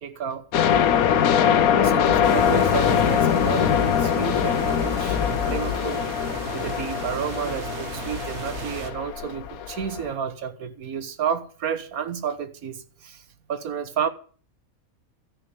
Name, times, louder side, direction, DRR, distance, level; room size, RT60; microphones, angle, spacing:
voice 1, 0.0-0.5 1.7-6.1 6.5-12.8 13.0-13.2 13.5-14.1, right 7 dB, 85° right, 1.6 m, -31 dB
sound 1, 0.5-10.1, left 8 dB, 80° left, 1.3 m, -22 dB
sound 2, 2.2-8.9, right 5 dB, 50° right, 1.6 m, -36 dB
13.5 x 6.4 x 9.4 m
omnidirectional pair, 1.5 m